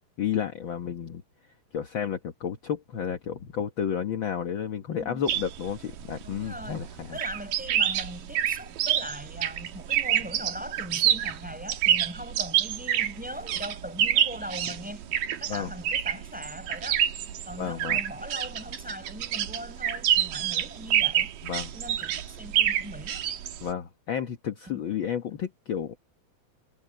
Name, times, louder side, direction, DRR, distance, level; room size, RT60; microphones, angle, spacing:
voice 1, 0.2-1.2 1.7-7.2 15.5-15.7 17.6-18.0 21.4-21.7 23.6-26.0, left 8 dB, 55° left, 1.5 m, -31 dB
voice 2, 4.9-5.2 6.2-6.8 7.1-15.0 15.4-17.1 17.4-21.3 21.7-23.2 24.6-24.8, equal, ahead, 7.0 m, -40 dB
sound 1, 5.3-23.7, right 11 dB, 85° right, 3.1 m, -28 dB
omnidirectional pair, 3.8 m